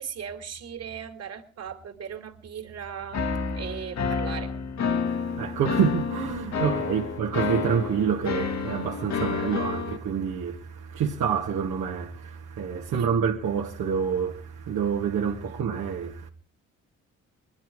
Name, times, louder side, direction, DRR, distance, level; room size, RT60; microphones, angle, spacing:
voice 1, 0.0-3.3 3.5-4.5 12.9-13.2, right 8 dB, 55° right, 2.8 m, -38 dB
sound 1, 3.1-10.0, left 5 dB, 65° left, 2.0 m, -29 dB
voice 2, 5.1-16.3, right 7 dB, 75° right, 1.9 m, -27 dB
21.5 x 12.0 x 4.7 m
cardioid pair, 90°, 30 cm